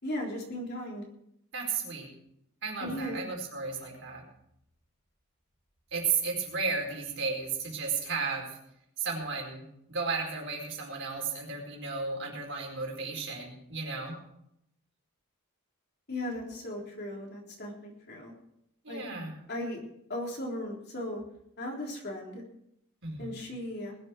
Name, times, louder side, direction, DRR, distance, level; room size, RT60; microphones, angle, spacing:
voice 1, 0.0-1.0 2.8-3.2 16.1-18.3 18.9-19.0 19.5-19.8 20.1-21.2 21.6-22.4 23.2-24.0, left 1 dB, 50° left, -1 dB, 3.7 m, -37 dB
voice 2, 1.5-2.1 2.6-4.2 5.9-8.5 9.0-9.6 9.9-14.2 18.8-19.3 23.0-23.3, right 5 dB, 55° right, 0 dB, 4.7 m, -34 dB
20.5 x 8.0 x 6.3 m, 0.75 s
head